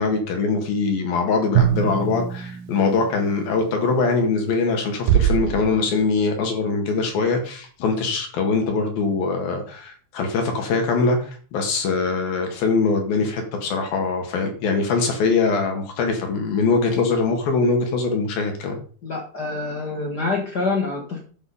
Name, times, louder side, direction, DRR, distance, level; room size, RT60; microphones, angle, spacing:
voice 1, 0.0-18.8, left 4 dB, 65° left, 3 dB, 3.5 m, -22 dB
Drum, 1.6-3.9, right 9 dB, 65° right, 2.6 m, -25 dB
sound 1, 5.1-7.0, right 11 dB, 90° right, 1.9 m, -23 dB
voice 2, 19.0-21.2, left 3 dB, 80° left, 0 dB, 0.9 m, -26 dB
11.0 x 7.0 x 5.5 m, 0.43 s
omnidirectional pair, 4.9 m